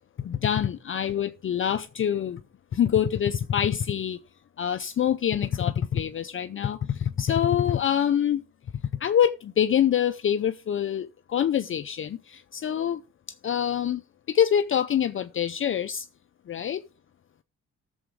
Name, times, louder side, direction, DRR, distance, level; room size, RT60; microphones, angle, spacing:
voice 1, 0.2-2.4 2.7-4.2 4.6-8.4 9.0-13.0 13.4-14.0 14.3-16.1 16.5-16.8, left 9 dB, 45° left, 0.6 m, -25 dB
17.0 x 7.2 x 3.6 m
cardioid pair, 90°, 30 cm